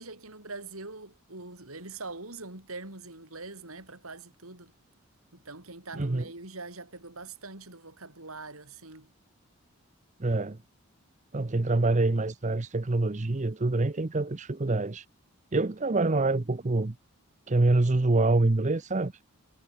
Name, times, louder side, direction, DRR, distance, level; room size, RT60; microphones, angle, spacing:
voice 1, 0.0-4.7 5.3-9.1, right 3 dB, 80° right, 6.9 m, -43 dB
voice 2, 5.9-6.3 10.2-10.6 11.3-15.1 15.5-17.0 17.5-19.1, right 2 dB, 35° right, 0.7 m, -26 dB
head